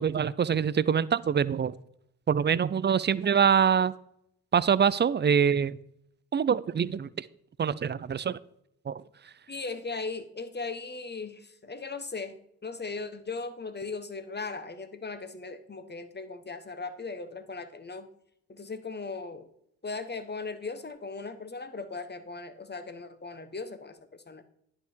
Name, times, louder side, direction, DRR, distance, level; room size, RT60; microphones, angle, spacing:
voice 1, 0.0-1.7 2.3-3.9 4.5-5.8 6.3-7.3 7.6-8.4 8.9-9.0, right 7 dB, 30° right, 19 dB, 0.5 m, -25 dB
voice 2, 9.5-18.1 18.5-19.5 19.8-24.4, left 4 dB, 25° left, 11 dB, 1.2 m, -38 dB
10.5 x 5.7 x 4.6 m, 0.76 s
hypercardioid pair, 40°, 39 cm